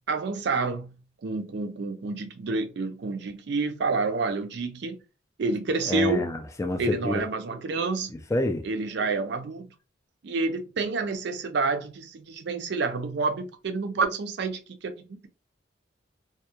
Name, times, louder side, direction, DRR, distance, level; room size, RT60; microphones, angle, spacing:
voice 1, 0.1-0.9 1.2-5.0 5.4-6.3 6.8-8.1 8.6-9.7 10.2-15.3, right 3 dB, 65° right, 0.4 m, -29 dB
voice 2, 5.9-7.2 8.3-8.6, left 1 dB, 15° left, 0.3 m, -27 dB
2.2 x 2.1 x 2.9 m
head